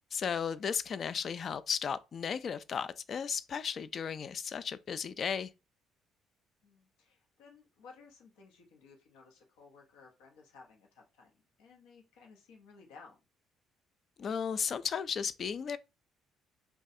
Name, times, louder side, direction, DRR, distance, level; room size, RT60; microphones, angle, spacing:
voice 1, 0.1-5.5 14.2-15.8, left 7 dB, 50° left, 0.3 m, -35 dB
voice 2, 6.6-11.3 11.6-13.2, left 4 dB, 85° left, 0.9 m, -57 dB
2.6 x 2.3 x 4.0 m
supercardioid pair, 65°, 0 cm